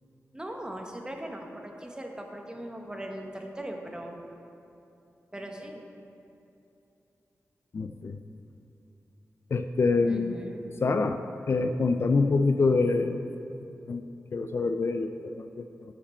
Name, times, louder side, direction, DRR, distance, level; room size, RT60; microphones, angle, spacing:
voice 1, 0.3-4.2 5.3-5.8 10.1-10.6, right 1 dB, 15° right, 2 dB, 1.0 m, -39 dB
voice 2, 7.7-8.2 9.5-10.3 10.8-11.2 11.5-13.2 13.9-14.0 14.3-15.6, left 3 dB, 50° left, 8 dB, 0.4 m, -25 dB
12.0 x 5.1 x 4.3 m, 2.8 s
wide cardioid pair, 80°, 5 cm